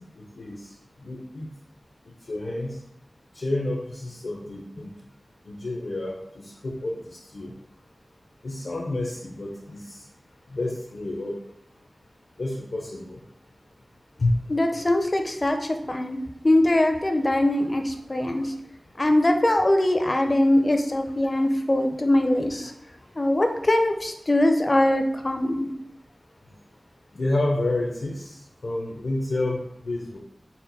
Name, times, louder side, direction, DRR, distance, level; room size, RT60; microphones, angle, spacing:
voice 1, 0.2-0.7 1.0-1.5 2.3-2.8 3.3-4.9 5.5-7.0 7.3-7.5 8.4-10.0 10.5-11.3 12.4-13.2 14.2-14.4 27.1-28.4 28.6-29.6 29.8-30.2, left 2 dB, 80° left, -2 dB, 0.6 m, -29 dB
voice 2, 14.5-15.6 15.9-16.2 16.4-18.5 19.0-22.7 23.2-25.7, left 1 dB, 35° left, 5 dB, 0.4 m, -22 dB
4.2 x 2.1 x 4.0 m, 0.75 s
wide cardioid pair, 70°, 0 cm